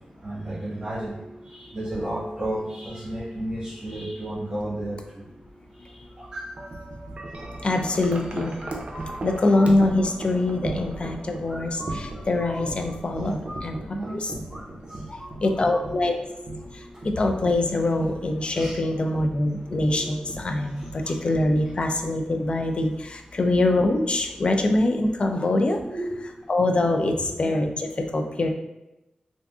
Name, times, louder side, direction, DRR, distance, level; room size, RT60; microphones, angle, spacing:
voice 1, 0.2-4.9 6.2-6.7 13.2-13.3 13.9-14.2 15.6-16.5 16.9-17.0 18.5-18.8 19.6-20.0 21.0-21.1 25.8-26.2 27.1-27.3, right 1 dB, 35° right, -11 dB, 1.0 m, -33 dB
Wind chime, 6.6-22.7, right 2 dB, 55° right, 0.5 m, -38 dB
voice 2, 7.6-8.5 9.2-13.8 14.1-14.3 15.4-16.2 17.2-25.8 26.5-28.5, left 2 dB, 45° left, 4 dB, 0.3 m, -24 dB
sound 1, 8.6-9.2 11.4-14.2 14.5-14.6 14.9-15.9, equal, 5° right, 0.7 m, -41 dB
3.5 x 2.5 x 2.4 m, 0.92 s
wide cardioid pair, 95°, 3 cm